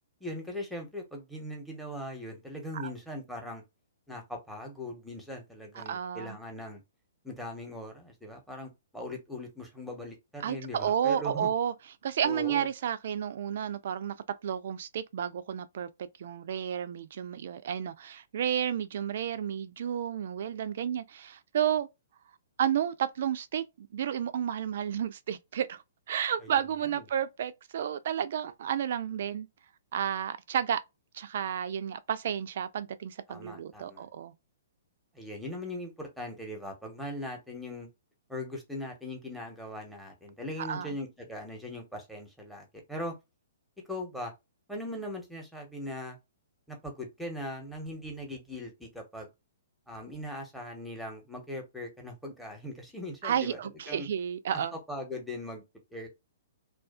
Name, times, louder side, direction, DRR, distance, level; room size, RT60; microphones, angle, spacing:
voice 1, 0.2-3.6 4.1-6.8 7.2-11.5 12.2-12.7 26.4-26.5 26.8-27.0 33.3-34.1 35.1-37.9 38.3-43.2 43.9-44.3 44.7-46.2 46.7-49.3 49.9-53.6 53.9-54.1 54.5-55.6 55.9-56.1, left 1 dB, ahead, 0.9 m, -40 dB
voice 2, 5.8-6.4 10.4-11.7 12.0-14.2 14.4-21.9 22.6-25.8 26.1-29.5 29.9-30.8 31.1-34.3 40.6-40.9 53.2-54.7, right 9 dB, 60° right, 0.3 m, -31 dB
2.4 x 2.4 x 2.4 m
hypercardioid pair, 130°, 0 cm